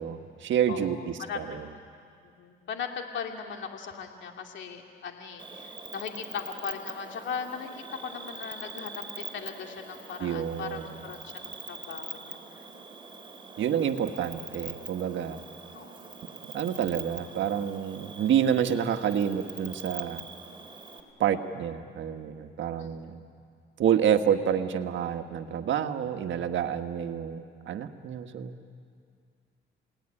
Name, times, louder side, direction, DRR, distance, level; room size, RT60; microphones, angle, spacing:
voice 1, 0.0-1.7 10.2-10.9 13.6-15.4 16.5-20.2 21.2-23.2 23.8-28.5, right 9 dB, 70° right, 7 dB, 1.6 m, -28 dB
voice 2, 0.7-1.4 2.2-12.6 15.7-16.0 22.8-23.2, left 6 dB, 70° left, 3 dB, 2.4 m, -39 dB
Cricket, 5.4-21.0, right 4 dB, 25° right, 3.7 m, -43 dB
28.5 x 19.0 x 10.0 m, 2.2 s
cardioid pair, 90°, 20 cm